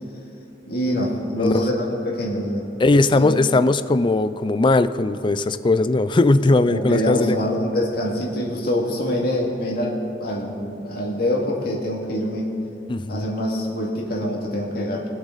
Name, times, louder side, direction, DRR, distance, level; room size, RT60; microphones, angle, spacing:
voice 1, 0.7-2.7 3.0-3.3 6.4-12.5 13.1-15.1, left 1 dB, 60° left, -2 dB, 2.4 m, -25 dB
voice 2, 2.8-7.4 12.9-13.2, left 2 dB, 30° left, 13 dB, 0.4 m, -19 dB
24.5 x 8.2 x 4.1 m, 2.9 s
head